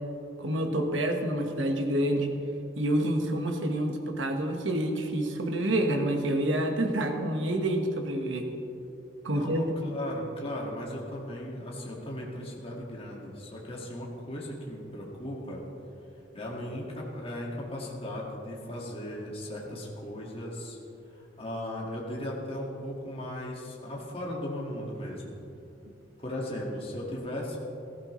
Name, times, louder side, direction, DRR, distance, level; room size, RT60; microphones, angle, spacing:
voice 1, 0.4-2.3 2.8-8.5 9.2-9.6, right 1 dB, 85° right, 4 dB, 1.4 m, -28 dB
voice 2, 9.3-15.6 16.3-20.8 21.1-25.3 26.2-27.6, left 1 dB, 30° left, -3 dB, 1.9 m, -37 dB
17.0 x 14.5 x 3.2 m, 2.8 s
head